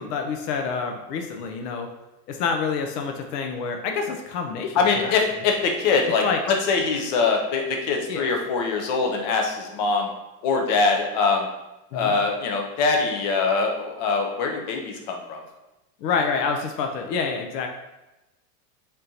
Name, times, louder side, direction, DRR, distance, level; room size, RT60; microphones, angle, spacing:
voice 1, 0.0-1.9 2.3-5.2 6.2-6.4 8.1-8.3 11.9-12.1 16.0-17.7, left 5 dB, 90° left, 4 dB, 0.7 m, -27 dB
voice 2, 4.7-10.1 10.4-11.5 11.9-15.4, left 4 dB, 30° left, 2 dB, 0.4 m, -23 dB
4.2 x 3.6 x 2.6 m, 0.99 s
supercardioid pair, 165°, 47 cm